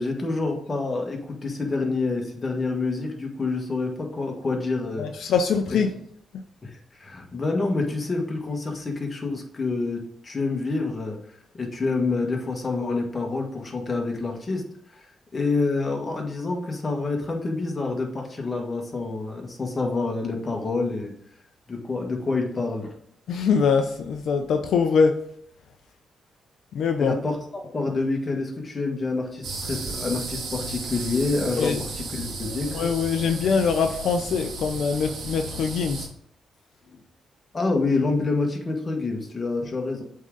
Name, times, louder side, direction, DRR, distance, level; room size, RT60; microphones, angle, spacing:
voice 1, 0.0-5.1 5.7-5.8 6.6-11.2 11.5-14.6 14.9-15.1 15.3-21.1 21.7-22.9 27.0-32.8 36.9-37.0 37.5-40.0, left 3 dB, 30° left, 1 dB, 1.6 m, -27 dB
voice 2, 5.0-5.9 23.3-25.2 26.7-27.1 31.6-31.8 32.7-36.1, left 5 dB, 75° left, 5 dB, 0.5 m, -23 dB
sound 1, 29.4-36.1, right 3 dB, 75° right, 1.7 m, -34 dB
8.0 x 3.7 x 3.9 m, 0.69 s
cardioid pair, 85°, 0 cm